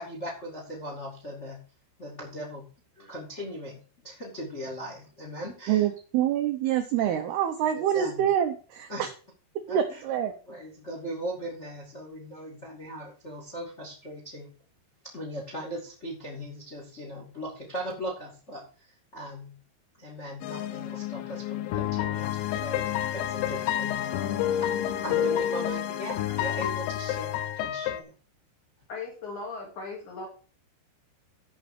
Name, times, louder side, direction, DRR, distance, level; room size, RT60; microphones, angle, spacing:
voice 1, 0.0-1.6 2.0-2.7 2.9-5.9 7.9-8.3 8.9-9.0 9.7-10.0 10.5-14.5 15.0-19.6 20.0-28.1, equal, 35° left, 0 dB, 1.1 m, -39 dB
voice 2, 5.7-9.1 9.7-10.3, right 10 dB, 85° right, 6 dB, 2.3 m, -26 dB
sound 1, 20.4-28.0, left 11 dB, 80° left, 2.9 m, -29 dB
voice 3, 28.9-30.3, left 3 dB, 50° left, 0 dB, 2.9 m, -37 dB
13.0 x 5.6 x 4.8 m, 0.39 s
omnidirectional pair, 5.6 m